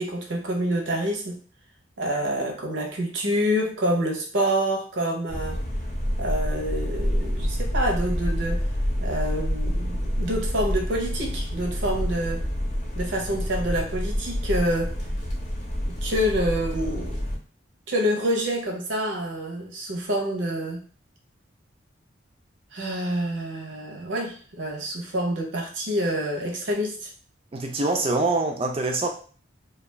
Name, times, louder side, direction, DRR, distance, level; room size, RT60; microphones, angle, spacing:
voice 1, 0.0-1.4 2.0-5.6 6.2-8.7 9.0-12.4 12.9-15.0 15.9-17.2 17.9-20.8 22.7-27.1, equal, 80° right, 0.7 m, -27 dB
sound 1, 5.3-17.4, equal, 35° left, 0.7 m, -28 dB
voice 2, 27.5-29.1, right 2 dB, 30° right, 0.4 m, -24 dB
2.3 x 2.3 x 3.2 m
head